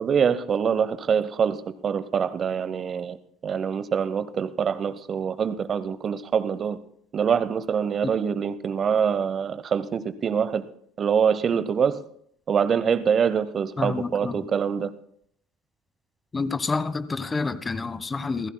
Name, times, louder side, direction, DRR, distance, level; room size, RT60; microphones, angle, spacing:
voice 1, 0.0-3.2 3.4-6.8 7.1-10.6 11.0-12.0 12.5-14.9, right 7 dB, 40° right, 0.8 m, -24 dB
voice 2, 13.8-14.4 16.3-18.5, left 4 dB, 25° left, 1.1 m, -28 dB
28.0 x 15.5 x 2.2 m
hypercardioid pair, 65°, 0 cm